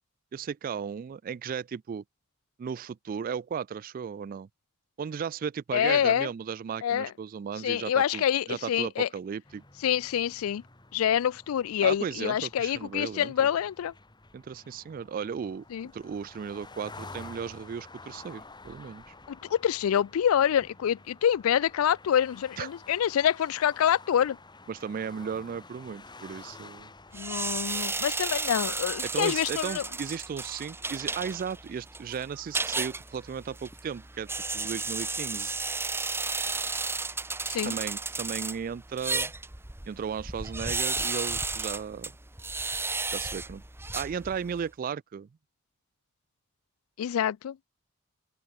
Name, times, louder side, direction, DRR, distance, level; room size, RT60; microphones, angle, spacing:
voice 1, 0.3-2.0 2.6-4.5 5.0-8.2 8.5-9.6 11.8-13.5 14.3-15.6 15.9-19.0 22.6-22.7 24.7-26.9 29.1-34.3 34.5-35.5 37.6-39.3 39.9-42.1 43.1-43.6 43.9-45.3, right 7 dB, 40° right, 0.3 m, -35 dB
voice 2, 5.7-6.3 6.8-7.1 7.6-9.1 9.8-10.6 10.9-13.9 15.7-15.9 19.3-24.4 27.1-29.8 37.5-37.8 47.0-47.6, left 9 dB, 85° left, 0.3 m, -26 dB
sound 1, 9.5-27.9, left 3 dB, 20° left, 2.5 m, -50 dB
sound 2, 27.1-44.6, right 3 dB, 10° right, 1.1 m, -33 dB
open air
head